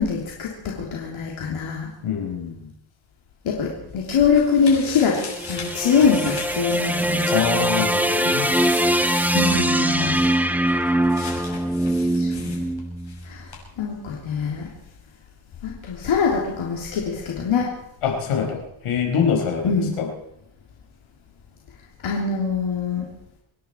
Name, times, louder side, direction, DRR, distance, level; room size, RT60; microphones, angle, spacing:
voice 1, 0.0-1.9 3.4-5.2 5.5-7.3 9.3-10.2 12.1-12.5 13.2-13.5 13.8-14.7 15.6-17.7 19.6-20.0 22.0-23.1, left 6 dB, 70° left, -2 dB, 3.3 m, -23 dB
voice 2, 2.0-2.7 7.3-8.5 10.0-10.3 18.0-19.7 20.0-20.1, left 7 dB, 85° left, 2 dB, 4.9 m, -24 dB
sound 1, 3.6-13.3 13.5-13.6, left 4 dB, 50° left, 6.8 m, -39 dB
sound 2, 5.0-13.4, right 1 dB, 5° right, 1.3 m, -22 dB
26.5 x 10.5 x 4.6 m, 0.79 s
cardioid pair, 75°, 50 cm